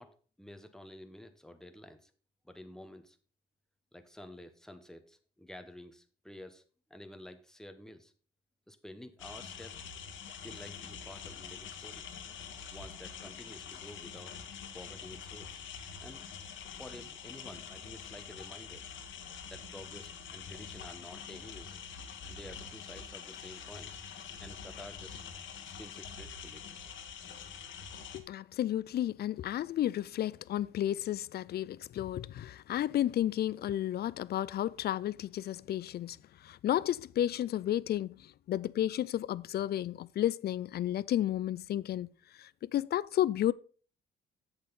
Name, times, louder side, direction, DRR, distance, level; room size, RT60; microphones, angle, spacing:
voice 1, 0.0-2.1 2.4-3.2 3.9-6.6 6.9-8.1 8.7-9.8 10.4-14.4 14.7-15.6 16.0-16.2 16.8-18.9 19.5-21.8 22.2-23.9 24.4-25.2 25.6-26.6, left 1 dB, 5° left, 1.0 m, -50 dB
sound 1, 9.2-28.2, left 7 dB, 70° left, 1.3 m, -45 dB
voice 2, 28.1-36.2 36.4-42.1 42.4-43.5, left 12 dB, 55° left, 0.4 m, -32 dB
7.9 x 7.3 x 4.0 m
cardioid pair, 90°, 20 cm